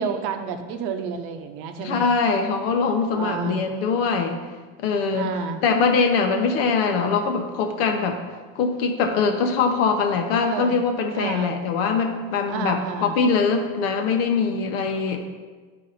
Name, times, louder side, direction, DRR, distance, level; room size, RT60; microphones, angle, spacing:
voice 1, 0.0-2.1 3.1-3.6 5.1-5.6 10.4-10.7 11.2-11.6 12.5-13.2 14.9-15.2, right 6 dB, 55° right, 6 dB, 0.8 m, -30 dB
voice 2, 1.8-4.4 4.8-5.3 5.6-8.2 8.5-15.2, left 5 dB, 75° left, 4 dB, 1.2 m, -22 dB
10.0 x 4.8 x 4.2 m, 1.4 s
cardioid pair, 165°, 29 cm